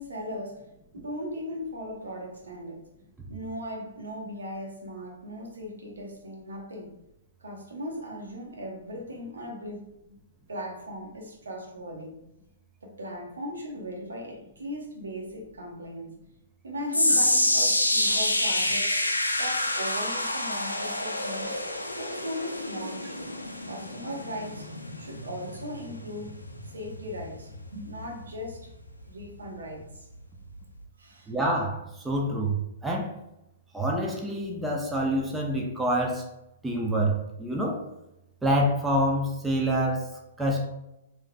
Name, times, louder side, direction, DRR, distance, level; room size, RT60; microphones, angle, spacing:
voice 1, 0.0-2.9 3.3-6.9 7.4-10.2 10.5-12.2 12.8-16.1 16.6-19.0 19.4-21.7 22.0-23.4 23.6-26.4 26.7-28.7 29.1-30.1 31.0-31.3, equal, 70° right, 1.0 m, -38 dB
sound 1, 16.9-29.3 29.6-29.9 30.6-30.7, left 1 dB, 90° left, 0.4 m, -28 dB
voice 2, 31.3-33.1 33.7-36.2 36.6-37.8 38.4-40.1 40.4-40.7, right 1 dB, 10° right, 0.6 m, -27 dB
4.8 x 3.0 x 2.2 m
figure-of-eight pair, 115°, 0 cm